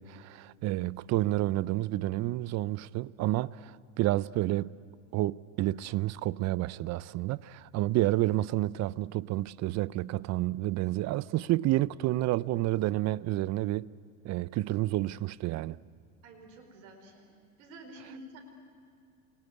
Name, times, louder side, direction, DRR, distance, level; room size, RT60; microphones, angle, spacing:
voice 1, 0.0-4.7 5.1-13.9 14.2-15.8, right 16 dB, 40° right, 0.6 m, -30 dB
voice 2, 16.2-18.4, right 1 dB, 75° right, 4.9 m, -50 dB
28.0 x 20.5 x 9.6 m
supercardioid pair, 105°, 41 cm